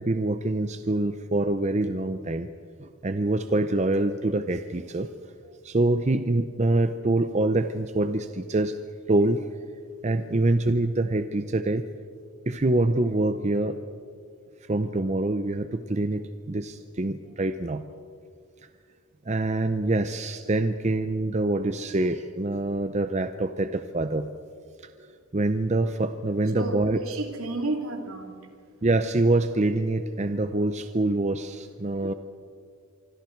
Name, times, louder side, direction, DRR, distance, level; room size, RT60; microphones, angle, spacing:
voice 1, 0.0-2.5 2.8-5.1 5.6-8.8 9.1-9.4 10.0-11.8 12.5-13.8 14.7-17.8 19.3-24.3 25.3-27.0 28.8-32.1, right 2 dB, 30° right, 10 dB, 0.6 m, -25 dB
voice 2, 26.5-28.3, right 2 dB, 80° right, 3 dB, 2.8 m, -31 dB
25.5 x 25.0 x 4.6 m, 2.1 s
head